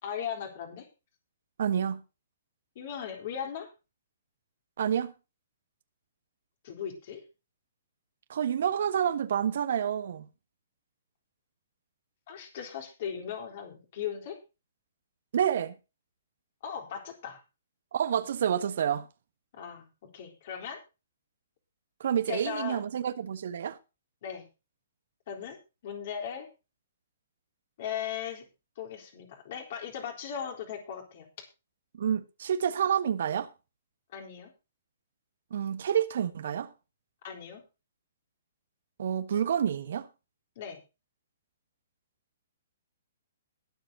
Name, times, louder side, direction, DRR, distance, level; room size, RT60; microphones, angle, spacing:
voice 1, 0.0-0.9 2.8-3.7 6.6-7.2 12.3-14.4 16.6-17.4 19.5-19.9 20.1-20.8 22.3-22.8 24.2-24.5 25.3-25.6 25.8-26.5 27.8-28.4 28.8-31.3 34.1-34.5 37.2-37.6 40.6-40.8, left 8 dB, 45° left, 4.0 m, -38 dB
voice 2, 1.6-2.0 4.8-5.1 8.3-10.3 15.3-15.8 17.9-19.1 22.0-23.8 31.9-33.5 35.5-36.7 39.0-40.1, right 9 dB, 55° right, 1.4 m, -28 dB
21.0 x 7.7 x 2.9 m
figure-of-eight pair, 120°, 0 cm